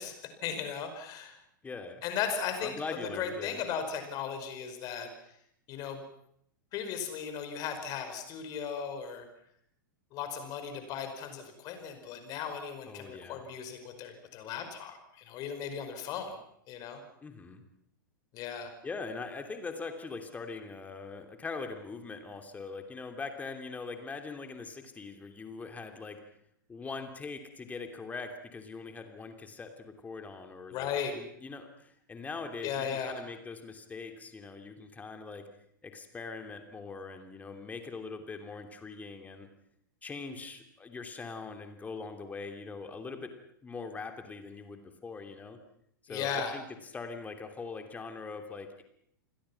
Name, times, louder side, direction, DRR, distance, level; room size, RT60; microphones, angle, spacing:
voice 1, 0.0-1.4 2.0-2.7 3.1-5.1 5.7-6.0 6.7-9.2 10.1-16.4 16.7-17.0 18.3-18.7 30.7-31.1 32.6-33.1 46.1-46.5, left 7 dB, 35° left, 7 dB, 5.0 m, -36 dB
voice 2, 1.6-2.0 2.6-3.6 12.9-13.4 17.2-17.6 18.8-26.2 26.7-35.5 35.8-39.5 40.0-43.3 43.6-45.6 46.1-48.8, left 4 dB, 15° left, 6 dB, 2.9 m, -42 dB
29.0 x 21.0 x 5.9 m, 0.71 s
figure-of-eight pair, 95°, 11 cm